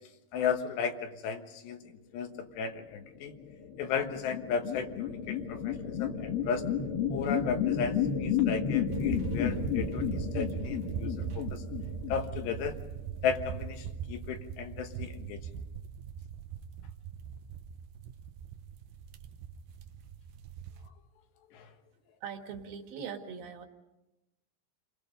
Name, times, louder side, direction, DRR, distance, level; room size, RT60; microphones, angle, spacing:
voice 1, 0.3-3.3 3.8-6.6 7.1-11.6 12.1-12.8 13.2-15.4 21.5-21.7, left 6 dB, 70° left, 6 dB, 3.4 m, -35 dB
sound 1, 3.2-12.9, left 8 dB, 55° left, 3.5 m, -32 dB
sound 2, 8.9-20.9, right 8 dB, 80° right, 2.0 m, -40 dB
voice 2, 22.2-23.7, right 7 dB, 55° right, 3 dB, 3.4 m, -41 dB
29.5 x 21.0 x 5.3 m, 0.97 s
omnidirectional pair, 5.2 m